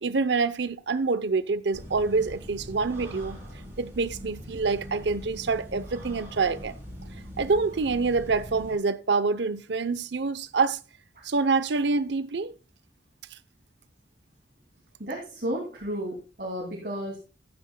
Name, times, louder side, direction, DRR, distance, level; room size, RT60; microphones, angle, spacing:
voice 1, 0.0-3.4 3.8-6.8 7.4-10.8 11.2-12.5, right 4 dB, 65° right, 0.7 m, -26 dB
sound 1, 1.7-8.7, equal, 15° right, 4.9 m, -42 dB
voice 2, 15.0-17.2, equal, 50° right, 2.6 m, -33 dB
14.0 x 10.5 x 2.2 m
head